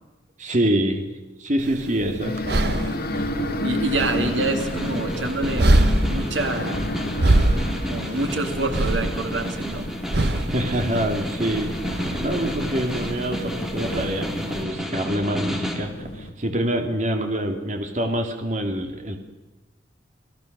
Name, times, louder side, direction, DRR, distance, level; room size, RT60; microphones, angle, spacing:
voice 1, 0.4-1.0 1.4-2.4 10.5-11.7 12.2-19.2, right 1 dB, 40° right, 4 dB, 2.6 m, -25 dB
sound 1, 1.6-14.6, right 1 dB, 60° right, 1.2 m, -25 dB
sound 2, 2.2-16.3, left 1 dB, 55° left, 2.5 m, -32 dB
voice 2, 3.6-5.7 6.1-7.1 7.6-9.9, right 2 dB, 90° right, 6 dB, 2.5 m, -27 dB
Snare drum, 4.2-15.9, equal, ahead, 2.7 m, -31 dB
27.0 x 18.0 x 6.8 m, 1.1 s
head